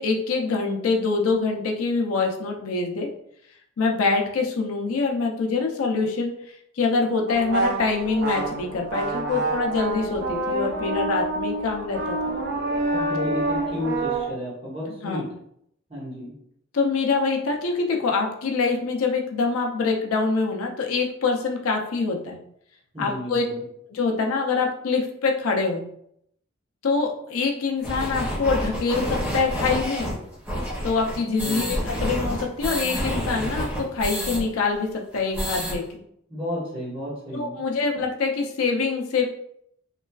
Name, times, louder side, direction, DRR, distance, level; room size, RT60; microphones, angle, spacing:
voice 1, 0.0-3.1 3.8-6.3 6.8-12.3 13.2-13.3 15.0-15.2 16.7-22.4 23.0-23.4 23.9-25.8 26.8-30.1 30.8-35.8 37.3-39.2, left 4 dB, 85° left, 1 dB, 0.5 m, -25 dB
sound 1, 7.3-14.3, right 2 dB, 50° right, 0.4 m, -27 dB
voice 2, 12.9-15.3 15.9-16.3 22.9-23.6 31.4-31.7 36.3-37.6, left 1 dB, 25° right, -7 dB, 1.2 m, -32 dB
sound 2, 27.8-34.4 34.7-34.8 35.1-35.7, equal, 10° right, 0.6 m, -28 dB
3.0 x 2.3 x 2.3 m, 0.72 s
head